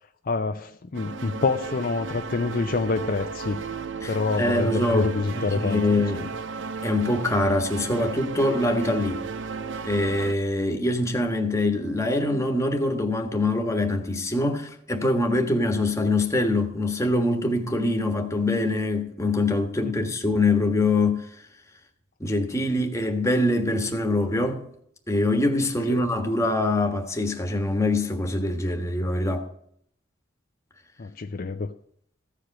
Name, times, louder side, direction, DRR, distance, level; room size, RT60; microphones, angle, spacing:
voice 1, 0.2-3.6 4.1-5.8 19.8-20.1 25.9-26.0 31.0-31.7, left 4 dB, 50° left, 0.5 m, -27 dB
sound 1, 0.9-10.3, right 5 dB, 80° right, 0.6 m, -34 dB
voice 2, 4.0-6.3 6.8-9.2 9.8-21.3 22.2-24.6 25.1-29.5, left 2 dB, 15° left, 1.4 m, -24 dB
15.0 x 5.0 x 8.8 m
head